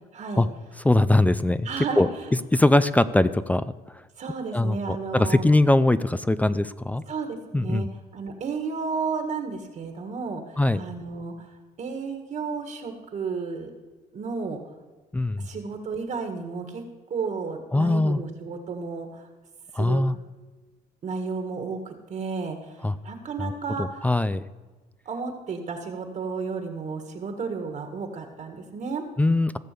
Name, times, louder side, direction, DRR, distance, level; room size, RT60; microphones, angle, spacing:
voice 1, 0.1-0.5 1.6-2.3 4.2-5.4 7.1-7.9 8.1-11.3 11.8-13.7 14.1-14.6 15.4-16.8 17.1-19.3 19.8-20.1 21.0-22.8 23.0-24.1 25.1-29.0, right 5 dB, 45° right, 5 dB, 1.8 m, -32 dB
voice 2, 0.8-1.7 2.0-2.1 2.5-3.7 4.5-7.0 7.5-7.9 10.6-10.8 15.1-15.5 17.7-18.2 19.7-20.2 22.8-22.9 23.4-23.5 23.8-24.4 29.2-29.6, left 2 dB, 10° left, 14 dB, 0.4 m, -21 dB
16.0 x 6.8 x 6.8 m, 1.3 s
cardioid pair, 110°, 17 cm